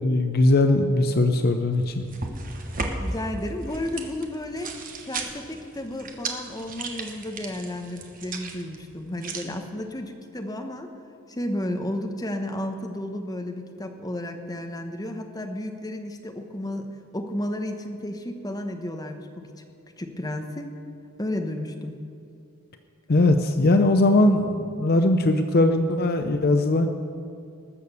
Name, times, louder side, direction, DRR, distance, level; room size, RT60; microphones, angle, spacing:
voice 1, 0.0-2.0 23.1-26.9, left 2 dB, 45° left, 7 dB, 0.6 m, -20 dB
sound 1, 1.7-9.4, right 3 dB, 40° right, 1.2 m, -35 dB
voice 2, 2.9-4.8 5.0-10.9 11.3-16.9 17.1-19.5 20.0-20.7 21.2-21.9, left 1 dB, 15° left, 5 dB, 0.9 m, -32 dB
20.0 x 6.7 x 6.8 m, 2.5 s
head